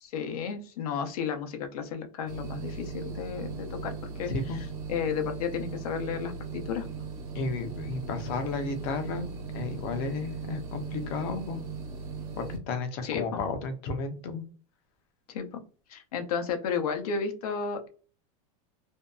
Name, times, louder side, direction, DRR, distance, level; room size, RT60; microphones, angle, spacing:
voice 1, 0.0-6.9 13.0-13.4 15.3-15.6 15.9-17.9, left 6 dB, 80° left, 6 dB, 0.7 m, -33 dB
sound 1, 2.3-12.6, right 4 dB, 80° right, 1.0 m, -38 dB
voice 2, 4.3-4.6 7.3-9.3 9.5-11.6 12.4-14.4, left 4 dB, 35° left, 7 dB, 0.5 m, -33 dB
2.6 x 2.2 x 2.2 m, 0.38 s
supercardioid pair, 170°, 19 cm